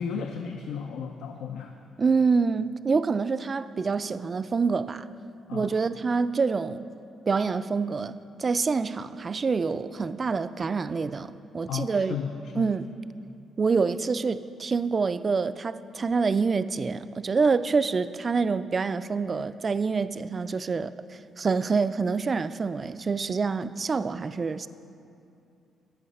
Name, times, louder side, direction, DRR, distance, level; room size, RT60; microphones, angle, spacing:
voice 1, 0.0-1.7 5.5-5.7 11.7-12.7, left 6 dB, 80° left, 4 dB, 0.5 m, -34 dB
voice 2, 2.0-5.1 5.5-6.9 7.3-12.2 12.6-12.9 13.6-24.7, right 4 dB, 35° right, 14 dB, 0.3 m, -26 dB
8.3 x 8.3 x 5.4 m, 2.6 s
cardioid pair, 90°, 0 cm